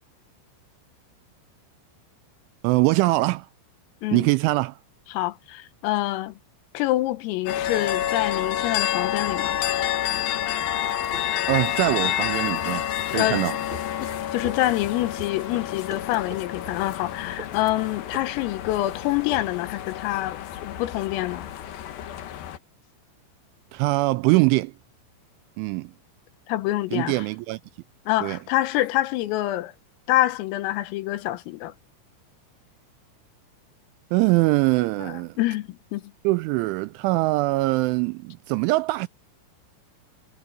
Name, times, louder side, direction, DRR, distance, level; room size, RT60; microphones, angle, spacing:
voice 1, 2.6-3.5 4.1-4.8 11.5-13.6 23.7-24.7 25.6-25.9 26.9-27.6 28.2-28.4 34.1-35.4 36.2-39.1, right 22 dB, 85° right, 2.8 m, -23 dB
voice 2, 5.1-6.4 6.8-9.6 13.1-13.4 14.3-20.4 20.6-21.5 26.5-27.3 28.1-29.7 30.1-31.7 35.0-36.0, left 16 dB, 90° left, 3.9 m, -26 dB
sound 1, 7.5-22.6, left 11 dB, 65° left, 2.4 m, -29 dB
sound 2, 10.8-21.5, right 1 dB, 10° right, 5.2 m, -45 dB
omnidirectional pair, 5.8 m